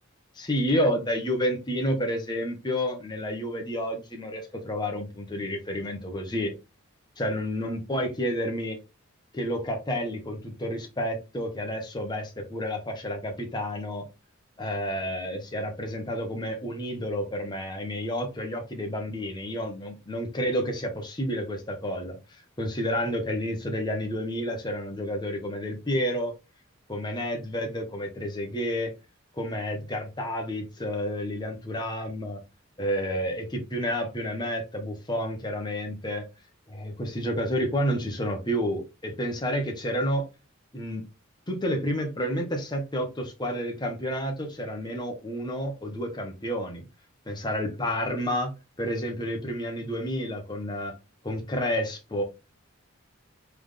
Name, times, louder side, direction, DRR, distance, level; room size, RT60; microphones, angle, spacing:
voice 1, 0.4-6.5 7.2-8.8 9.3-14.1 14.6-22.2 22.6-26.3 26.9-28.9 29.3-32.4 32.8-36.3 36.7-40.3 40.7-41.0 41.5-46.9 47.3-48.5 48.8-51.0 51.2-52.2, equal, 20° left, 1.0 m, -30 dB
3.8 x 3.5 x 3.4 m
head